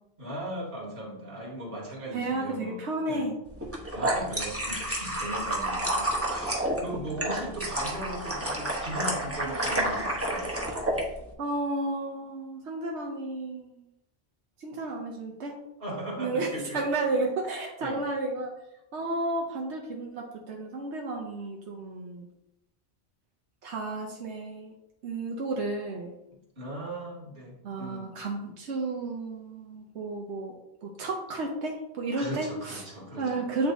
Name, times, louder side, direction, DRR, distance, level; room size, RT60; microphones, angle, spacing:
voice 1, 0.2-3.3 3.9-10.5 15.8-16.8 17.8-18.0 26.6-28.1 32.2-33.4, right 1 dB, 55° right, -3 dB, 2.0 m, -38 dB
voice 2, 2.1-3.3 11.4-13.8 14.6-15.6 16.2-16.5 16.7-18.5 18.9-22.3 23.6-24.7 25.0-26.1 27.6-32.8 33.2-33.7, right 2 dB, 90° right, 0 dB, 1.1 m, -32 dB
sound 1, 3.6-11.0, right 1 dB, 15° right, 1.1 m, -30 dB
7.9 x 3.4 x 4.0 m, 0.84 s
omnidirectional pair, 1.1 m